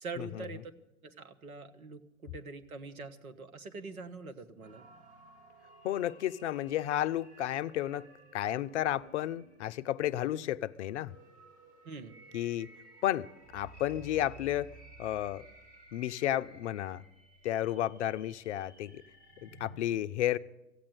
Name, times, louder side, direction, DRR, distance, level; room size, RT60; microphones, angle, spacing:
voice 1, 0.0-0.7 1.0-4.8 11.8-12.2, right 4 dB, 80° right, 1.2 m, -44 dB
sound 1, 4.6-19.7, right 2 dB, 50° right, 4.1 m, -56 dB
voice 2, 5.8-11.1 12.3-12.7 13.0-15.5 15.9-17.0 17.4-19.0 19.4-20.4, left 12 dB, 55° left, 0.5 m, -32 dB
14.5 x 8.7 x 9.3 m
figure-of-eight pair, 100°, 42 cm